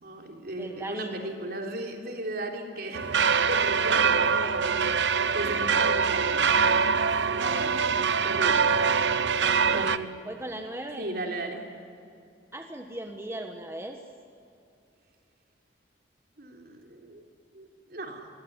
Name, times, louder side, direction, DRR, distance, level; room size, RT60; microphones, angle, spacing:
voice 1, 0.0-3.1 3.5-9.2 9.7-10.1 11.0-11.6 16.4-17.2 17.5-18.3, right 1 dB, 55° right, 2 dB, 3.8 m, -37 dB
voice 2, 0.5-1.2 9.7-11.1 12.5-14.0, right 1 dB, 15° right, 4 dB, 1.4 m, -38 dB
sound 1, 2.9-10.0, right 5 dB, 75° right, 0.8 m, -24 dB
26.5 x 21.5 x 9.7 m, 2.5 s
head